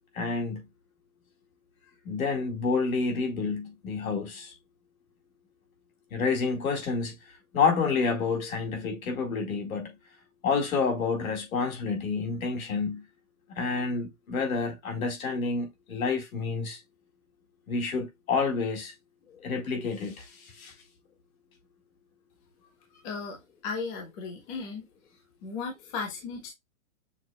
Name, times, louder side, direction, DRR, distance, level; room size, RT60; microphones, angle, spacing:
voice 1, 0.1-0.7 2.0-4.5 6.1-7.2 7.5-9.9 10.4-13.0 13.5-16.8 17.7-18.9 19.3-20.7, left 4 dB, 80° left, 2.0 m, -29 dB
voice 2, 23.0-24.8 25.4-26.5, left 4 dB, 20° left, 0.9 m, -36 dB
6.3 x 3.4 x 2.2 m
hypercardioid pair, 170°, 41 cm